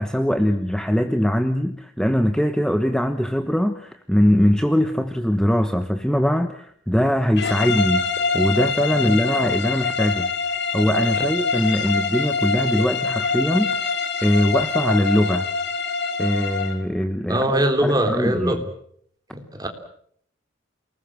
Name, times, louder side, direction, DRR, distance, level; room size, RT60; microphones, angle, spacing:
voice 1, 0.0-8.1 8.3-10.3 10.7-15.5 16.2-18.6, equal, 5° left, 8 dB, 1.1 m, -21 dB
sound 1, 7.4-16.8, left 5 dB, 60° left, 2.6 m, -24 dB
sound 2, 8.2-8.3 9.1-9.2 10.0-10.1 10.9-11.0 11.9-12.0 12.8-12.9, left 1 dB, 35° left, 4.4 m, -38 dB
voice 2, 17.3-18.6 19.3-19.7, right 1 dB, 20° right, 5 dB, 3.5 m, -22 dB
28.5 x 20.0 x 7.5 m, 0.65 s
head